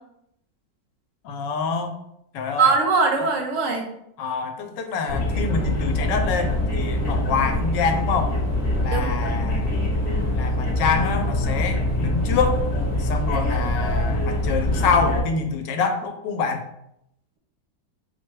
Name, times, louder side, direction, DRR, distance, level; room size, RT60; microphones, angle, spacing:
voice 1, 1.2-1.9 2.3-2.7 3.2-3.3 4.2-8.3 8.8-9.8 10.3-12.7 13.0-16.6, left 5 dB, 85° left, 5 dB, 1.3 m, -26 dB
voice 2, 2.6-3.9 8.9-9.1, right 4 dB, 60° right, 3 dB, 0.9 m, -21 dB
sound 1, 5.1-15.2, left 1 dB, 45° left, 1.0 m, -24 dB
4.5 x 2.2 x 4.5 m, 0.79 s
omnidirectional pair, 1.9 m